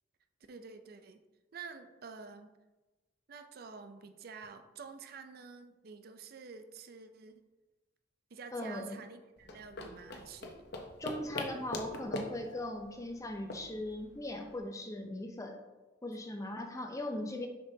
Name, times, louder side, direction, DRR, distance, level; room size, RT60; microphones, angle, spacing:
voice 1, 0.5-1.2 1.5-2.5 3.3-7.4 8.3-10.6, right 5 dB, 55° right, 8 dB, 0.4 m, -49 dB
voice 2, 8.5-9.0 11.0-15.6 16.0-17.5, left 1 dB, 15° left, 4 dB, 0.6 m, -39 dB
sound 1, 9.4-14.6, left 2 dB, 60° left, 0.8 m, -43 dB
6.7 x 5.4 x 2.7 m, 1.1 s
head